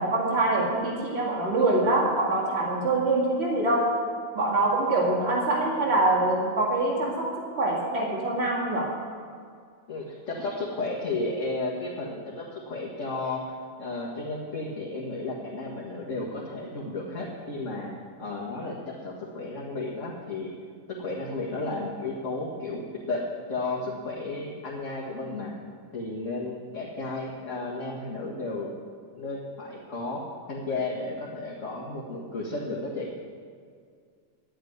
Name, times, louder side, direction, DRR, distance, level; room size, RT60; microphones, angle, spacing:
voice 1, 0.0-3.9 4.3-9.0, right 2 dB, 45° right, -2 dB, 2.5 m, -24 dB
voice 2, 9.9-17.9 18.2-20.5 21.0-23.2 23.5-25.5 25.9-28.7 29.2-30.2 30.5-33.1, left 2 dB, 55° left, -4 dB, 2.2 m, -33 dB
11.5 x 9.0 x 9.5 m, 2.1 s
omnidirectional pair, 1.5 m